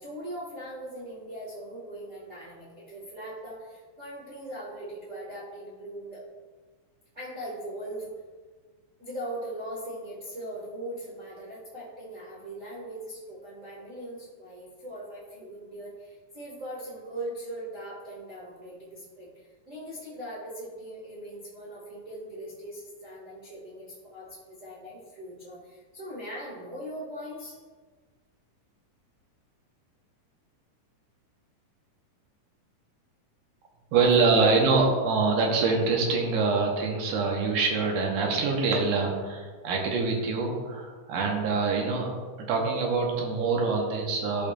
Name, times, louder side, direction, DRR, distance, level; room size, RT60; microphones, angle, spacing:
voice 1, 0.0-6.2 7.1-8.2 9.0-27.6 34.0-34.5, right 1 dB, 90° right, -8 dB, 0.6 m, -40 dB
voice 2, 33.9-44.5, right 4 dB, 70° right, 1 dB, 2.3 m, -25 dB
12.5 x 5.1 x 2.3 m, 1.5 s
omnidirectional pair, 3.9 m